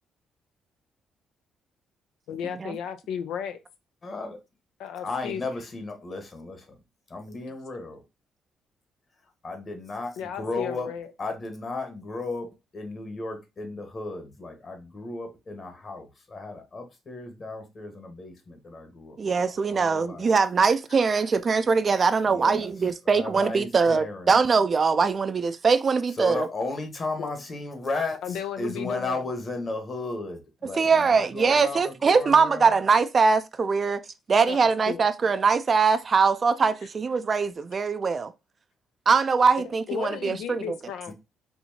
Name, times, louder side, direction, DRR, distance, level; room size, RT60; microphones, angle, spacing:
voice 1, 2.3-3.6 4.8-5.4 10.2-11.1 20.3-20.4 27.2-27.3 28.2-29.2 34.5-35.0 39.6-41.1, left 8 dB, 85° left, 0.4 m, -34 dB
voice 2, 4.0-4.4 5.0-6.8 7.1-8.0 9.4-10.9 11.2-12.5 12.7-20.3 22.2-22.7 23.0-24.4 26.1-32.8 41.1-41.2, left 3 dB, 40° left, 1.3 m, -34 dB
voice 3, 19.2-26.5 30.7-34.0 34.3-38.3 39.1-40.8, right 5 dB, 40° right, 0.4 m, -22 dB
4.3 x 2.7 x 2.7 m
cardioid pair, 90°, 0 cm